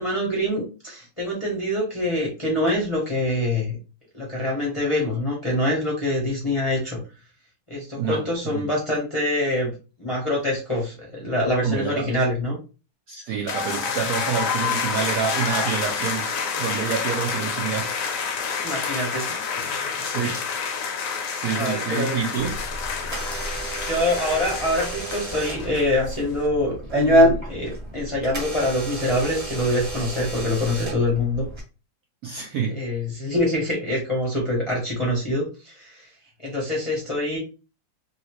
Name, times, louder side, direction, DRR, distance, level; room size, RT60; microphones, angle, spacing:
voice 1, 0.0-3.8 4.1-7.0 7.7-9.7 10.0-12.6 18.6-19.2 21.6-22.2 23.8-31.4 32.7-36.1 36.4-37.4, left 1 dB, 25° left, 0.7 m, -25 dB
voice 2, 8.0-8.7 11.6-12.2 13.1-16.3 16.6-18.1 20.0-20.5 21.0-22.6 32.2-32.9, right 6 dB, 75° right, 0.9 m, -28 dB
sound 1, 13.5-26.2, left 6 dB, 65° left, 0.8 m, -28 dB
Door / Alarm, 22.4-31.6, right 1 dB, 25° right, 1.1 m, -27 dB
2.9 x 2.8 x 2.9 m
omnidirectional pair, 2.0 m